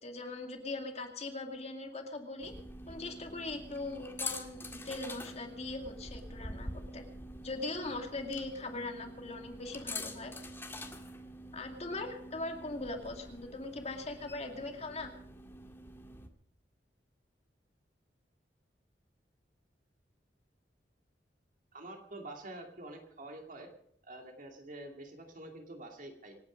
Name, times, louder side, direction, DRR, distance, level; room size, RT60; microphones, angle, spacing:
voice 1, 0.0-2.5 2.9-7.0 7.4-10.3 11.5-15.1, left 2 dB, 40° left, 4 dB, 2.3 m, -40 dB
sound 1, 2.4-16.3, left 1 dB, 15° left, 1.9 m, -45 dB
voice 2, 21.7-23.7 24.0-26.4, right 1 dB, 50° right, 3 dB, 2.4 m, -47 dB
26.5 x 9.6 x 5.2 m, 0.67 s
head